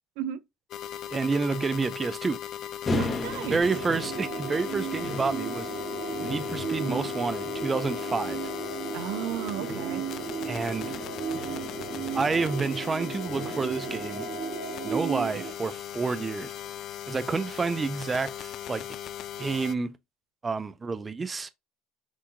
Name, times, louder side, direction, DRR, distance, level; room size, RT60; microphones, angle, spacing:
sound 1, 0.7-19.7, left 11 dB, 50° left, 0.3 m, -38 dB
voice 1, 1.1-2.4 3.5-5.7 6.2-8.5 10.4-11.0 12.1-14.3 14.8-16.5 17.1-18.9 19.4-20.0 20.4-21.5, right 4 dB, 20° right, 0.4 m, -29 dB
sound 2, 2.8-14.4, left 1 dB, 25° left, 1.0 m, -38 dB
voice 2, 3.0-3.6 8.9-10.0, right 11 dB, 75° right, 0.5 m, -34 dB
sound 3, 3.6-15.5, right 7 dB, 60° right, 1.6 m, -35 dB
6.1 x 2.8 x 2.6 m
supercardioid pair, 120°, 0 cm